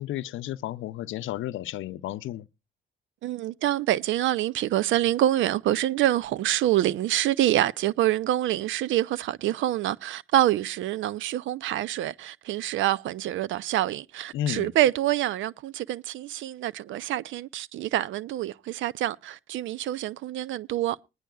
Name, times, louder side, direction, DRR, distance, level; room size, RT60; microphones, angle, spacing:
voice 1, 0.0-2.5 14.3-14.7, left 12 dB, 80° left, 0.6 m, -32 dB
voice 2, 3.2-21.0, right 13 dB, 75° right, 0.5 m, -26 dB
20.5 x 10.0 x 2.3 m
cardioid pair, 90°, 20 cm